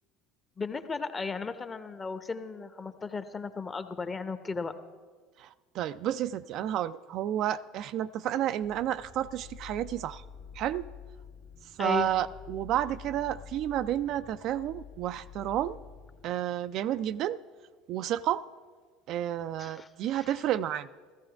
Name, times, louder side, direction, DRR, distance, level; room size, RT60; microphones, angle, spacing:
voice 1, 0.6-4.7 11.8-12.1 19.6-20.4, left 4 dB, 25° left, 10 dB, 0.9 m, -35 dB
voice 2, 5.4-10.2 10.5-10.9 11.8-15.8 16.2-17.4 17.9-18.4 19.1-20.9, right 11 dB, 55° right, 13 dB, 0.3 m, -31 dB
sound 1, 8.6-16.3, left 6 dB, 75° left, 1.7 m, -48 dB
15.0 x 14.5 x 3.4 m, 1.5 s
hypercardioid pair, 70°, 0 cm